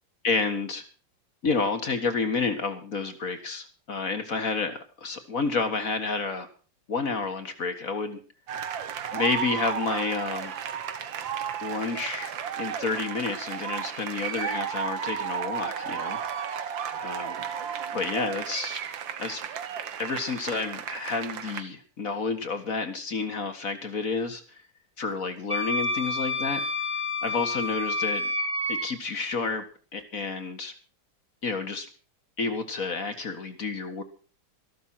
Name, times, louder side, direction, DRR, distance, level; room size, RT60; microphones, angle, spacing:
voice 1, 0.2-0.8 1.4-6.5 6.9-8.2 9.1-10.5 11.6-12.3 12.6-16.7 17.0-17.4 17.9-18.8 19.2-19.4 20.0-24.6 25.0-26.6 27.2-28.3 28.7-29.6 29.9-30.7 31.4-31.9 32.4-34.0, left 4 dB, 40° left, 7 dB, 1.9 m, -30 dB
sound 1, 8.5-21.6, right 8 dB, 65° right, 1.8 m, -33 dB
Wind instrument woodwind instrument, 25.5-28.9, left 2 dB, 5° right, 1.4 m, -29 dB
14.0 x 12.5 x 5.7 m, 0.37 s
omnidirectional pair, 2.3 m